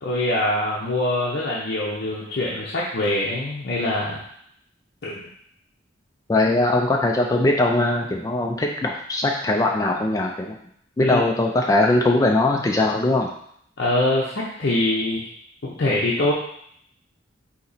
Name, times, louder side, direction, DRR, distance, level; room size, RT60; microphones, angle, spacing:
voice 1, 0.0-4.2 5.0-5.3 11.0-11.2 13.8-15.2 15.6-16.3, left 1 dB, 60° left, -5 dB, 0.6 m, -24 dB
voice 2, 6.3-10.5 11.0-13.3, left 2 dB, 20° left, 0 dB, 0.3 m, -20 dB
4.1 x 2.9 x 4.0 m, 0.68 s
head